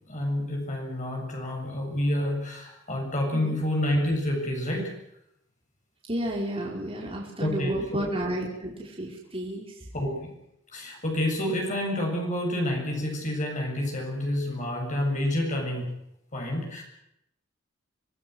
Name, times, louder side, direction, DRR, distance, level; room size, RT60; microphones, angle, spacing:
voice 1, 0.1-4.9 7.4-8.0 9.9-10.1 10.7-15.9 16.3-16.8, left 1 dB, 40° left, 0 dB, 7.4 m, -28 dB
voice 2, 6.1-9.7, right 1 dB, 30° right, -2 dB, 4.8 m, -32 dB
25.5 x 19.5 x 8.0 m, 0.79 s
head